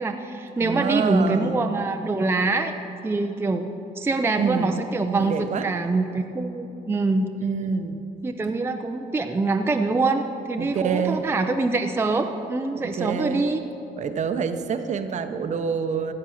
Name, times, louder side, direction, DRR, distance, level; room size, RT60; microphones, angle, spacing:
voice 1, 0.0-2.7 3.0-7.3 8.2-13.6, right 3 dB, 15° right, 5 dB, 0.5 m, -24 dB
voice 2, 0.6-1.6 4.4-4.8 5.1-5.7 7.4-8.0 10.6-11.2 12.7-13.4 14.0-16.1, right 6 dB, 45° right, 9 dB, 0.8 m, -27 dB
13.5 x 8.0 x 6.3 m, 2.9 s
cardioid pair, 110°, 17 cm